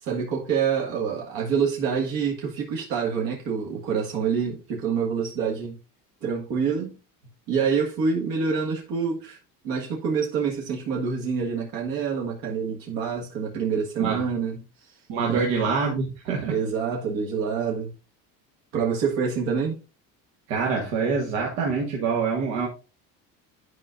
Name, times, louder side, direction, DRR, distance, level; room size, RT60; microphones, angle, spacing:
voice 1, 0.0-5.8 6.2-6.9 7.5-9.4 9.6-14.6 15.3-15.5 16.5-17.9 18.7-19.8, right 6 dB, 70° right, 1.7 m, -26 dB
voice 2, 15.1-16.6 20.5-22.7, right 5 dB, 90° right, 1.7 m, -25 dB
10.5 x 4.9 x 2.5 m
cardioid pair, 150°, 37 cm